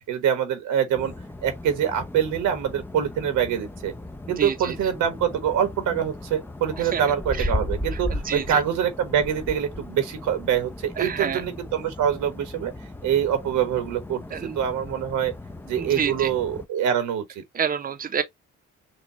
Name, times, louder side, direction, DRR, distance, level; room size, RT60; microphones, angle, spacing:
voice 1, 0.1-1.1 1.4-3.9 4.3-12.7 13.0-14.2 14.6-15.3 15.6-17.4, right 9 dB, 90° right, 1.3 m, -25 dB
sound 1, 0.9-16.7, left 1 dB, 5° left, 0.5 m, -36 dB
voice 2, 4.4-4.7 6.8-7.5 7.9-8.6 11.0-11.4 14.3-14.6 15.8-16.3 17.5-18.2, right 7 dB, 30° right, 0.7 m, -29 dB
6.1 x 2.3 x 2.8 m
cardioid pair, 90°, 30 cm